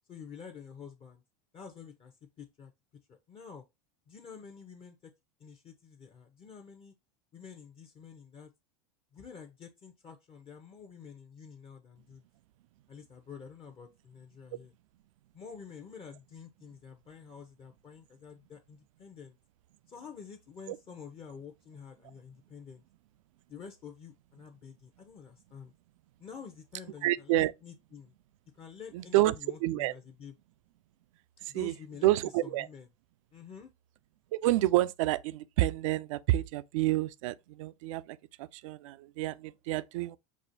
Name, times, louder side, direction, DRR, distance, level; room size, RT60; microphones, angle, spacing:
voice 1, 0.1-1.2 1.5-2.7 3.1-3.6 4.1-5.1 5.4-6.9 7.3-8.5 9.1-12.2 12.9-14.7 15.3-19.4 19.9-22.8 23.5-25.7 26.2-28.1 28.5-30.3 31.5-32.2 32.4-32.9 33.3-33.7, left 6 dB, 30° left, 0.7 m, -49 dB
voice 2, 27.0-27.5 28.9-29.3 29.6-29.9 31.4-31.7 32.0-32.7 34.3-40.2, right 16 dB, 70° right, 0.4 m, -29 dB
6.1 x 2.4 x 2.6 m
hypercardioid pair, 105°, 17 cm